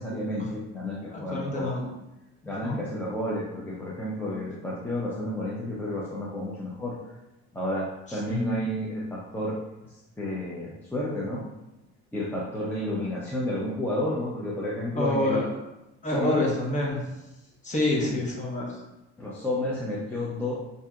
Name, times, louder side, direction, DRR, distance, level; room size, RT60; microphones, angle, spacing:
voice 1, 0.0-1.7 2.5-6.9 7.5-9.6 10.2-11.4 12.1-15.4 16.1-16.5 19.2-20.5, left 1 dB, 5° left, -7 dB, 0.6 m, -31 dB
voice 2, 1.1-1.9 2.6-2.8 8.1-8.6 15.0-15.5 16.0-17.0 17.6-18.8, left 1 dB, 25° left, -3 dB, 1.1 m, -27 dB
5.5 x 2.7 x 2.4 m, 0.95 s
cardioid pair, 115°, 31 cm